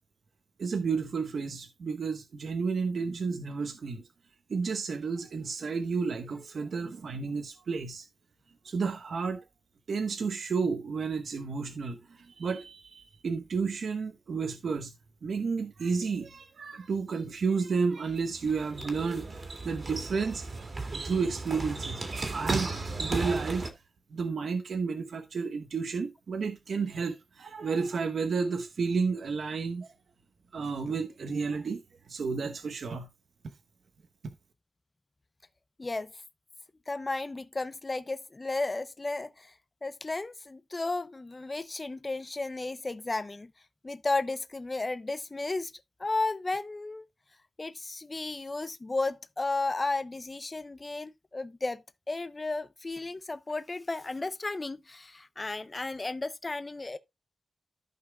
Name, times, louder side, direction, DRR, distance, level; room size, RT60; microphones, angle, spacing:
voice 1, 0.6-4.0 4.5-8.1 8.6-9.4 9.9-14.9 15.2-20.7 21.0-22.7 23.0-23.6 24.1-29.9 30.5-31.8 32.1-33.1 34.2-34.3, right 5 dB, 75° right, 1.0 m, -31 dB
sound 1, 18.1-23.7, right 3 dB, 50° right, 2.1 m, -35 dB
voice 2, 35.8-36.1 36.9-39.5 39.8-43.5 43.8-45.7 46.0-47.1 47.6-57.0, left 3 dB, 30° left, 0.6 m, -33 dB
14.0 x 5.6 x 2.2 m
wide cardioid pair, 95°, 0 cm